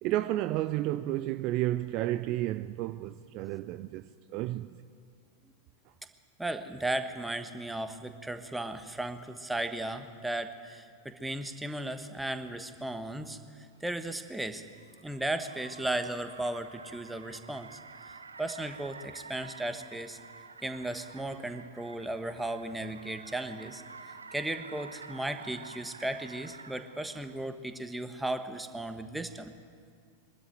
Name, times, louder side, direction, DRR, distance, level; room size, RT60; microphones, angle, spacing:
voice 1, 0.0-4.8, right 15 dB, 40° right, 0.5 m, -32 dB
voice 2, 6.4-13.4 13.8-14.6 15.0-17.8 18.4-20.2 20.6-29.5, right 1 dB, 5° right, 1.2 m, -36 dB
Car, 13.5-27.5, right 4 dB, 75° right, 0.7 m, -50 dB
23.0 x 12.5 x 9.2 m
figure-of-eight pair, 90°, 0 cm